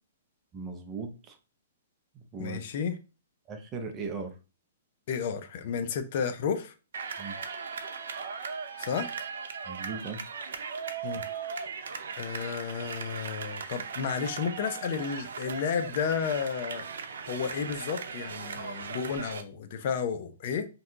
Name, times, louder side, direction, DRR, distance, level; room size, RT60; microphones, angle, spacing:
voice 1, 0.5-1.4 2.1-2.6 3.5-4.3 7.2-7.4 9.7-10.2, right 4 dB, 20° right, 0.5 m, -38 dB
voice 2, 2.4-3.0 5.1-6.7 8.8-9.1 11.0-11.2 12.2-16.8 17.3-20.7, left 6 dB, 50° left, 0.4 m, -32 dB
sound 1, 6.9-19.4, right 5 dB, 80° right, 0.5 m, -38 dB
2.7 x 2.2 x 3.6 m
hypercardioid pair, 155°, 0 cm